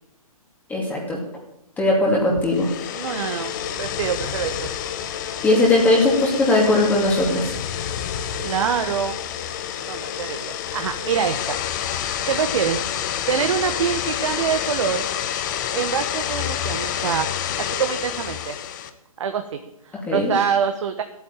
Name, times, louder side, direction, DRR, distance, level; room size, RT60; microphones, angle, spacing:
voice 1, 0.7-1.2 1.8-2.7 5.4-7.5 20.1-20.3, left 2 dB, 10° left, -2 dB, 2.4 m, -19 dB
sound 1, 2.4-18.9, left 10 dB, 30° left, 1.1 m, -28 dB
voice 2, 2.9-3.5 3.8-4.7 8.4-9.2 9.9-11.6 12.3-12.8 13.3-15.1 15.7-17.5 17.8-18.6 19.2-19.6 19.8-21.0, right 7 dB, 55° right, 7 dB, 1.2 m, -25 dB
12.5 x 8.8 x 9.0 m, 0.84 s
hypercardioid pair, 150°, 19 cm